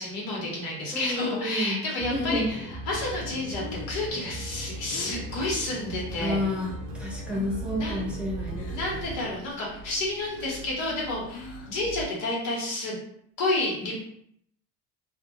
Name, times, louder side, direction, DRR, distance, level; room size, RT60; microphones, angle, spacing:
voice 1, 0.0-6.4 7.8-8.0 8.7-13.0 13.4-14.0, left 2 dB, 65° left, -3 dB, 1.1 m, -30 dB
voice 2, 0.9-2.5 6.2-6.7 7.0-8.7, left 1 dB, 5° right, -4 dB, 0.8 m, -30 dB
sound 1, 2.0-9.2, right 1 dB, 55° right, 0.6 m, -38 dB
Breathing, 3.6-6.9 7.3-7.7 8.0-9.0 9.4-11.9, left 6 dB, 45° left, 0.5 m, -45 dB
sound 2, 4.1-12.1, right 7 dB, 85° left, 0.8 m, -44 dB
2.4 x 2.0 x 2.9 m, 0.69 s
hypercardioid pair, 80°, 33 cm